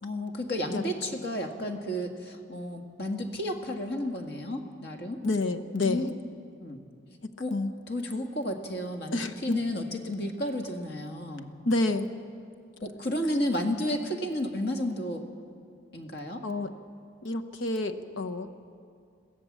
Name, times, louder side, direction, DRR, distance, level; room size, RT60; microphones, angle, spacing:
voice 1, 0.0-5.2 5.8-6.1 6.6-6.8 7.4-7.5 7.9-11.5 12.8-15.2 15.9-16.4, left 1 dB, 55° left, 3 dB, 1.8 m, -32 dB
voice 2, 5.2-6.2 7.5-7.7 9.1-9.6 11.6-12.1 16.4-16.7 17.2-18.5, left 2 dB, 85° left, 8 dB, 1.1 m, -28 dB
23.0 x 16.0 x 7.4 m, 2.3 s
head